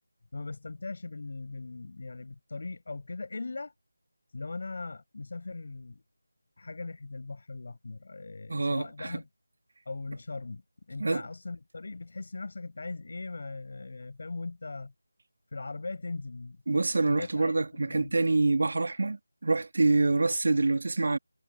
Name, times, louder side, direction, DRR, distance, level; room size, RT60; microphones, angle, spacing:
voice 1, 0.3-3.7 4.3-6.0 6.6-9.3 9.9-10.6 10.9-14.9 15.5-16.8 17.1-18.1, left 3 dB, 45° left, 5.5 m, -39 dB
voice 2, 8.5-9.2 11.0-11.2 16.7-21.2, right 3 dB, 50° right, 1.9 m, -26 dB
figure-of-eight pair, 165°, 0 cm